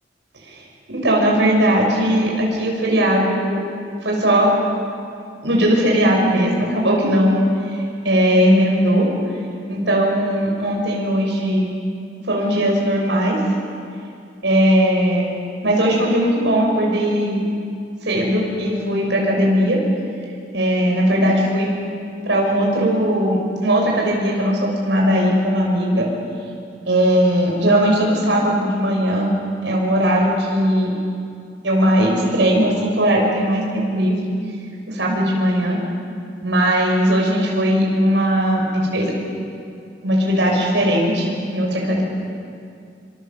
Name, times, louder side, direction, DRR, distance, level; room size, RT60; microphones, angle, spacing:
voice 1, 0.9-3.6 4.0-4.5 5.4-9.1 9.7-11.7 12.2-13.4 14.4-15.2 15.6-17.4 18.0-19.8 20.5-21.7 22.3-23.4 23.6-26.1 26.9-29.3 29.6-30.9 31.6-34.2 34.9-35.8 36.4-39.1 40.0-42.0, equal, 85° right, -1 dB, 6.4 m, -18 dB
27.0 x 26.5 x 7.6 m, 2.4 s
head